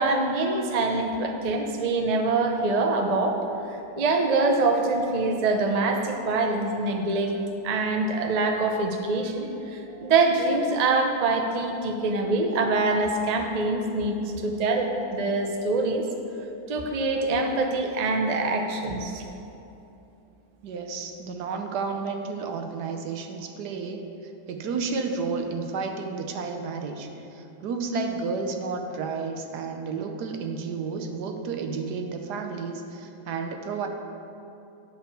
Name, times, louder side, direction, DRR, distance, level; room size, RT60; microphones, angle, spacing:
voice 1, 0.0-3.4 4.0-7.3 7.6-14.1 14.4-16.0 16.7-19.2, right 3 dB, 90° right, 3 dB, 0.3 m, -24 dB
voice 2, 20.6-24.0 24.5-33.9, right 4 dB, 70° right, 4 dB, 1.3 m, -31 dB
10.5 x 4.8 x 6.9 m, 2.9 s
omnidirectional pair, 1.9 m